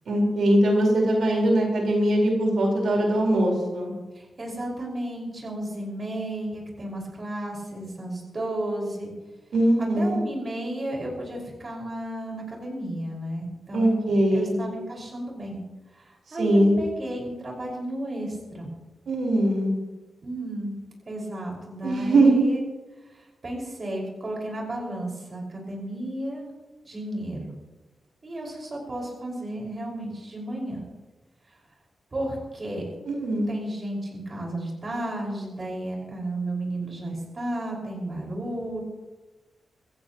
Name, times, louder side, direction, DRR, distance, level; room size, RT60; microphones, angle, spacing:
voice 1, 0.1-3.9 9.5-10.2 13.7-14.6 16.4-16.8 19.1-19.7 21.8-22.3 33.1-33.5, right 1 dB, 80° right, -1 dB, 4.4 m, -21 dB
voice 2, 4.2-9.1 9.8-15.6 16.0-18.7 20.2-20.7 21.1-22.6 23.1-26.5 26.8-27.5 28.2-30.8 32.1-32.9 33.5-38.8, right 1 dB, 35° right, -1 dB, 5.4 m, -33 dB
26.0 x 15.0 x 3.0 m, 1.1 s
wide cardioid pair, 125°, 0 cm